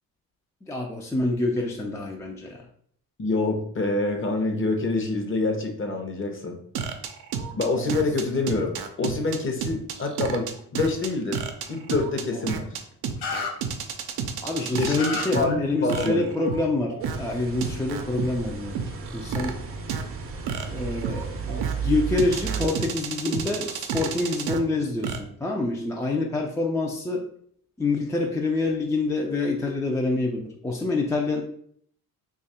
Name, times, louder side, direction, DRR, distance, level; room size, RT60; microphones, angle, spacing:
voice 1, 0.7-2.6 14.4-18.8 19.1-19.5 20.7-27.2 27.8-31.4, left 2 dB, 10° left, 0 dB, 0.4 m, -27 dB
voice 2, 3.2-6.6 7.5-11.4 11.7-12.7 14.7-16.3, left 3 dB, 35° left, 3 dB, 0.8 m, -26 dB
sound 1, 6.7-15.4 15.9-17.2 17.6-18.3 18.7-19.5 19.9-20.0 20.5-21.7 22.2-24.6 25.0-25.2, right 7 dB, 85° right, 0.6 m, -30 dB
sound 2, 13.2-13.5 14.9-15.2, left 4 dB, 75° left, 1.0 m, -29 dB
sound 3, 17.0-22.7, right 6 dB, 35° right, 0.6 m, -33 dB
2.9 x 2.4 x 4.2 m, 0.64 s
cardioid pair, 90°, 38 cm